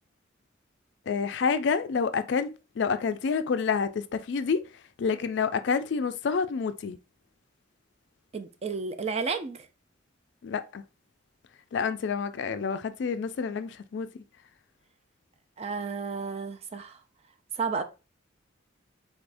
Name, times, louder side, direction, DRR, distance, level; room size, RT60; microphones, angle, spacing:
voice 1, 1.1-4.7 5.0-7.0 10.4-10.8 11.7-14.1, left 5 dB, 60° left, 0.3 m, -28 dB
voice 2, 8.3-9.7 15.6-17.0 17.6-17.8, right 5 dB, 30° right, 0.3 m, -32 dB
4.0 x 3.4 x 2.5 m
head